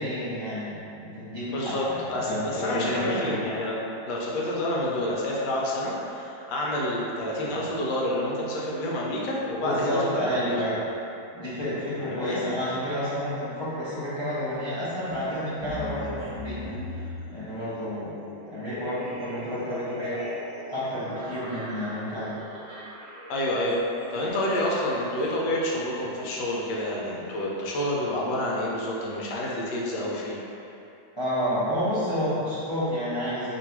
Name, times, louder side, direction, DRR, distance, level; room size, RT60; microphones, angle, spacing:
voice 1, 0.0-2.0 2.3-3.4 7.5-7.6 9.6-10.8 11.3-17.0 17.3-18.1 18.5-20.2 20.7-22.3 31.1-33.6, equal, 35° left, -13 dB, 0.4 m, -30 dB
voice 2, 1.5-3.8 4.1-10.5 12.0-12.4 23.3-23.8 24.1-30.4, left 1 dB, 75° left, -4 dB, 1.3 m, -28 dB
sound 1, 15.0-27.7, left 1 dB, 60° right, 0.5 m, -41 dB
3.1 x 2.6 x 4.4 m, 2.7 s
omnidirectional pair, 1.9 m